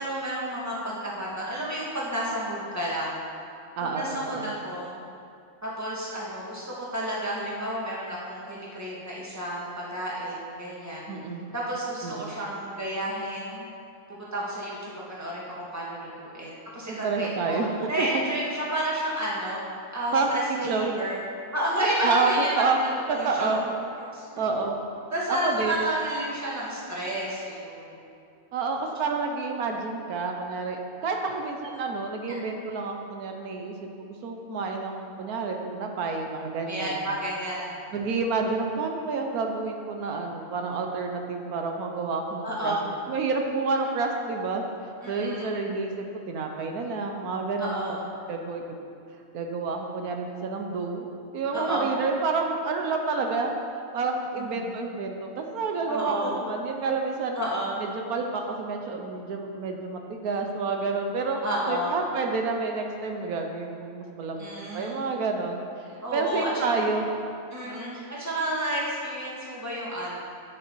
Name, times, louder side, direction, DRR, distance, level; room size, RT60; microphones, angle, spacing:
voice 1, 0.0-3.2 3.8-4.9 5.6-11.1 11.5-13.7 14.1-17.6 17.9-19.6 19.9-21.2 21.5-22.6 22.9-23.6 24.1-24.3 25.1-27.9 31.3-31.4 36.7-37.8 42.4-42.9 45.0-45.5 47.6-48.0 51.5-51.9 54.4-54.7 55.9-56.3 57.4-57.8 61.4-62.0 64.4-65.2 65.9-66.8 67.5-70.2, right 1 dB, 10° right, -6 dB, 1.8 m, -31 dB
voice 2, 3.8-4.5 11.1-11.4 12.0-12.3 16.9-18.2 20.1-20.9 22.0-22.8 23.1-23.6 24.4-24.8 25.3-25.8 28.5-37.0 37.9-42.8 43.1-44.6 45.1-47.8 48.3-48.6 49.3-51.1 51.3-53.5 53.9-57.4 57.8-61.4 61.7-64.5 64.7-65.6 66.1-67.1, right 4 dB, 90° right, 3 dB, 1.3 m, -29 dB
9.4 x 7.6 x 4.6 m, 2.5 s
omnidirectional pair, 1.5 m